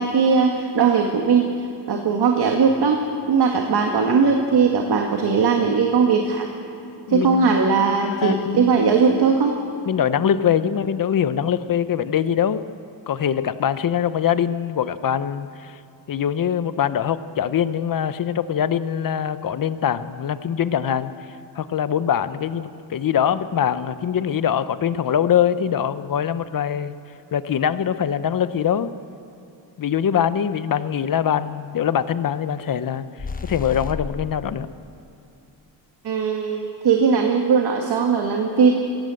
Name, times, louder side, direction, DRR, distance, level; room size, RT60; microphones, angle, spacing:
voice 1, 0.0-1.5 1.9-3.0 3.3-6.5 7.1-9.5 36.0-38.7, right 5 dB, 60° right, 2 dB, 2.0 m, -19 dB
voice 2, 7.1-7.6 8.1-8.9 9.9-12.6 13.1-15.8 16.1-21.1 21.5-26.9 27.3-28.9 29.8-33.0 33.5-34.7, left 9 dB, 50° left, 13 dB, 0.9 m, -23 dB
sound 1, 33.2-34.4, left 4 dB, 20° left, 0.9 m, -31 dB
23.5 x 17.0 x 7.7 m, 2.7 s
cardioid pair, 125°, 43 cm